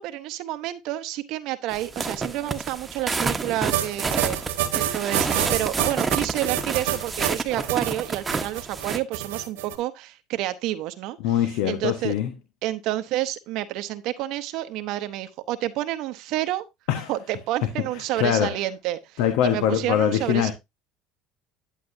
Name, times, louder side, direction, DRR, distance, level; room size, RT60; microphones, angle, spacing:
voice 1, 0.0-4.4 4.7-11.2 11.6-12.1 12.6-16.6 17.1-20.5, right 14 dB, 65° right, 0.8 m, -29 dB
sound 1, 1.7-9.0, right 4 dB, 25° right, 1.1 m, -29 dB
sound 2, 3.7-9.7, right 12 dB, 85° right, 1.3 m, -27 dB
voice 2, 11.2-12.3 16.9-17.1 17.8-17.9 18.2-18.6 19.2-20.5, left 10 dB, 75° left, 1.2 m, -23 dB
10.5 x 8.2 x 2.7 m
supercardioid pair, 95°, 0 cm